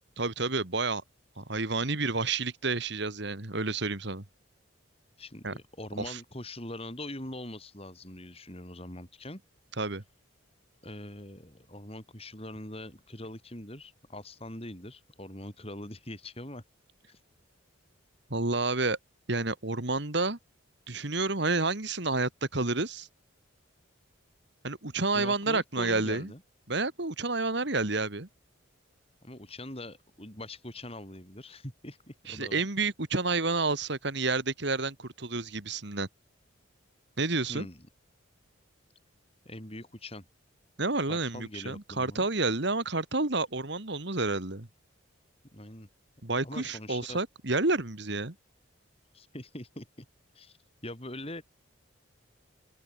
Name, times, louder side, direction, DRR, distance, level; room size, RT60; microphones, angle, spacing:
voice 1, 0.2-1.0 1.4-4.2 5.4-5.5 6.1-6.2 9.8-10.0 18.3-19.0 19.3-20.4 20.9-23.1 24.6-26.3 26.7-28.3 32.3-36.1 37.2-37.7 40.8-44.7 46.2-48.3, right 3 dB, 55° right, 2.0 m, -30 dB
voice 2, 5.2-9.4 10.8-16.6 17.1-17.2 25.1-26.4 29.2-32.6 37.5-37.8 39.4-40.2 41.1-42.3 45.5-45.9 46.4-47.2 49.1-50.1 50.3-50.6 50.8-51.4, left 1 dB, 30° left, 7.5 m, -42 dB
open air
head